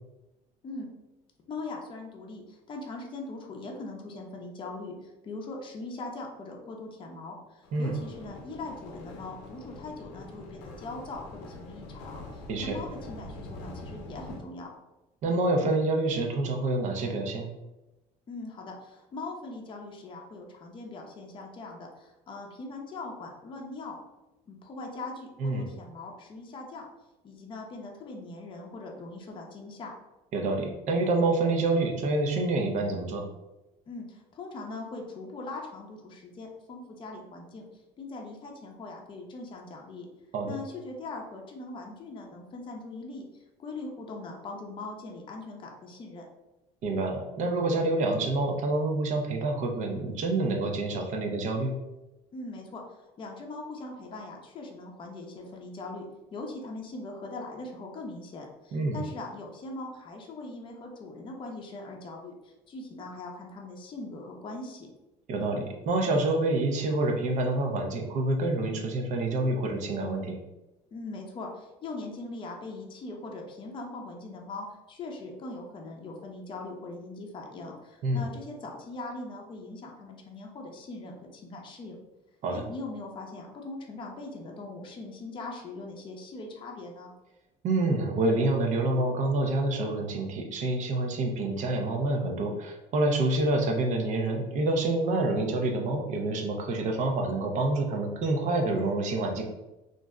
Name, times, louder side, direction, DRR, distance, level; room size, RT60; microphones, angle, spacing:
voice 1, 1.5-14.7 18.3-24.0 24.5-26.9 27.2-29.9 33.9-37.6 38.0-40.1 40.5-46.3 52.3-52.8 53.2-56.0 56.3-64.9 70.9-82.0 82.5-87.1, left 2 dB, 35° left, 1 dB, 0.6 m, -41 dB
sound 1, 7.6-14.4, left 2 dB, 85° left, 0.6 m, -44 dB
voice 2, 15.2-17.5 25.4-25.7 30.3-33.2 40.3-40.6 46.8-51.7 58.7-59.0 65.3-70.4 78.0-78.2 82.4-82.6 87.6-99.4, right 2 dB, 55° right, 3 dB, 0.6 m, -27 dB
2.5 x 2.0 x 3.5 m, 0.99 s
supercardioid pair, 105°, 15 cm